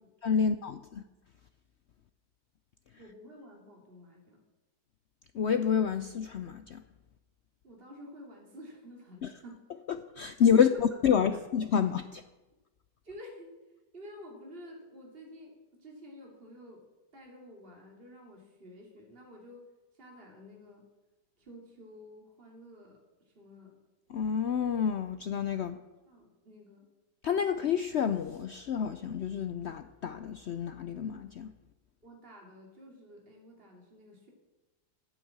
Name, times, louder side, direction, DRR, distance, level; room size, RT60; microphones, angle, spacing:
voice 1, 0.2-1.0 5.3-6.8 9.2-9.3 9.9-12.2 24.1-25.8 27.2-31.5, left 7 dB, 75° left, 0.6 m, -28 dB
voice 2, 3.0-4.4 7.6-9.6 10.5-10.6 11.1-11.4 13.0-13.5 13.9-15.5 15.8-16.8 17.1-19.7 19.9-20.9 21.4-23.0 23.3-23.7 26.1-26.9 32.0-34.3, equal, 35° right, 2.9 m, -50 dB
11.0 x 9.4 x 8.7 m
omnidirectional pair, 1.8 m